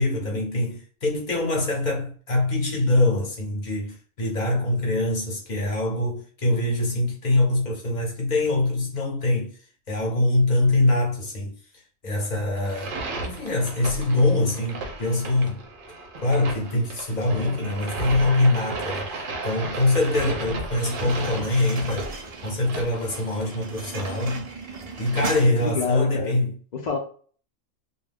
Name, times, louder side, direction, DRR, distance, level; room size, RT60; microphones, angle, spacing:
voice 1, 0.0-9.5 9.9-11.5 12.0-13.0 13.2-15.6 16.2-22.1 22.4-24.4 25.0-26.6, left 2 dB, 40° left, 0.8 m, -24 dB
sound 1, 12.6-25.2, right 2 dB, 55° right, 0.6 m, -35 dB
sound 2, 20.9-25.9, right 4 dB, 80° right, 0.3 m, -37 dB
voice 2, 25.6-26.4 26.7-27.0, left 5 dB, 80° left, 0.4 m, -27 dB
2.4 x 2.1 x 3.4 m
omnidirectional pair, 1.4 m